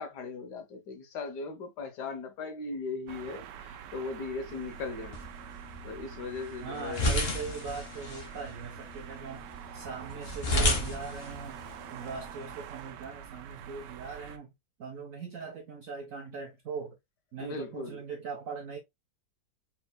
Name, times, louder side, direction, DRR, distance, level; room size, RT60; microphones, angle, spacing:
voice 1, 0.0-5.2 5.8-7.1 17.4-18.0, left 4 dB, 75° left, 1.7 m, -38 dB
sound 1, 3.1-14.4, right 9 dB, 80° right, 1.2 m, -46 dB
sound 2, 4.5-12.5, left 1 dB, 40° left, 1.3 m, -34 dB
voice 2, 6.6-9.5 9.7-14.5 14.8-17.0 17.3-18.8, right 5 dB, 60° right, 1.0 m, -40 dB
4.3 x 4.1 x 2.2 m
omnidirectional pair, 1.8 m